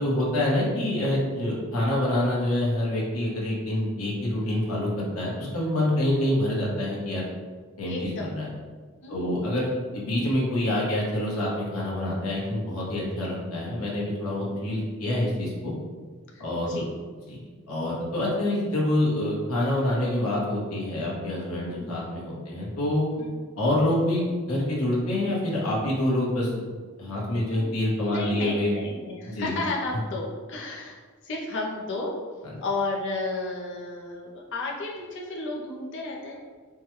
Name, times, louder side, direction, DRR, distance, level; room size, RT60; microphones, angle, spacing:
voice 1, 0.0-7.2 7.8-8.5 9.1-15.7 16.4-16.8 17.3-17.4 17.7-23.1 23.6-26.5 27.0-28.7 29.3-29.5, left 1 dB, 80° left, -4 dB, 1.0 m, -26 dB
voice 2, 7.9-8.3 9.0-9.4 16.3-16.9 21.7-21.9 23.2-23.4 27.5-27.8 28.1-32.1 32.6-36.4, left 2 dB, 55° left, -2 dB, 0.6 m, -33 dB
4.6 x 2.2 x 3.1 m, 1.5 s
head